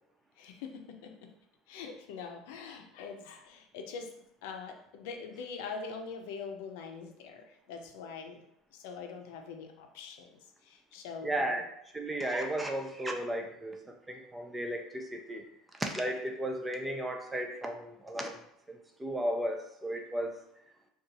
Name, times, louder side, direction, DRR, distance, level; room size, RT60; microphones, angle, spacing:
voice 1, 0.4-1.3 1.7-4.1 4.4-8.5 8.7-11.6, left 5 dB, 85° left, 4 dB, 0.5 m, -43 dB
voice 2, 11.2-11.6 11.9-13.8 14.1-15.4 15.8-18.4 18.7-20.4, right 1 dB, 10° right, 3 dB, 0.3 m, -34 dB
2.7 x 2.3 x 3.9 m, 0.76 s
cardioid pair, 175°, 0 cm